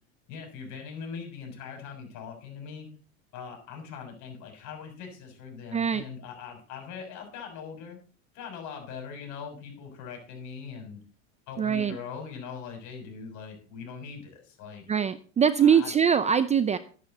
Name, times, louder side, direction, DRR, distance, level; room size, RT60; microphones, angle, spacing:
voice 1, 0.3-2.9 3.3-8.0 8.3-11.0 11.5-14.9 15.6-15.9, left 6 dB, 50° left, 3 dB, 6.4 m, -41 dB
voice 2, 5.7-6.0 11.6-12.0 14.9-16.8, right 7 dB, 20° right, 14 dB, 0.5 m, -23 dB
13.0 x 10.5 x 4.1 m, 0.38 s
supercardioid pair, 125°, 37 cm